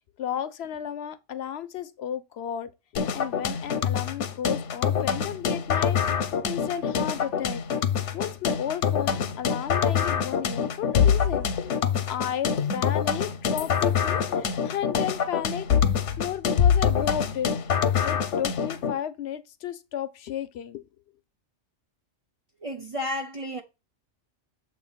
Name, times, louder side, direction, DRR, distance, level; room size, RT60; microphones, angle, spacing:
voice 1, 0.2-2.7 3.1-7.6 8.1-11.5 12.1-15.7 16.2-17.5 18.0-20.9, left 9 dB, 70° left, 0.8 m, -33 dB
sound 1, 3.0-19.0, left 7 dB, 90° left, 1.1 m, -25 dB
voice 2, 22.6-23.6, left 1 dB, 40° right, 0.5 m, -32 dB
7.3 x 2.7 x 5.5 m
omnidirectional pair, 1.2 m